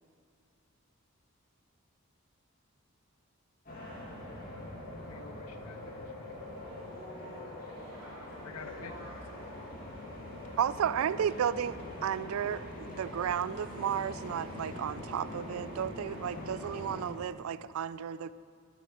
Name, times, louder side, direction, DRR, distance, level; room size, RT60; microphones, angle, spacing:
sound 1, 3.7-17.1, left 1 dB, 40° left, 2.3 m, -43 dB
voice 1, 5.0-6.4 7.5-7.8 8.4-9.1, left 6 dB, 85° left, 9 dB, 0.4 m, -50 dB
voice 2, 6.6-9.3, equal, 15° right, -11 dB, 3.3 m, -51 dB
voice 3, 10.6-18.3, right 8 dB, 75° right, 17 dB, 0.3 m, -33 dB
12.0 x 8.2 x 6.8 m, 2.3 s
head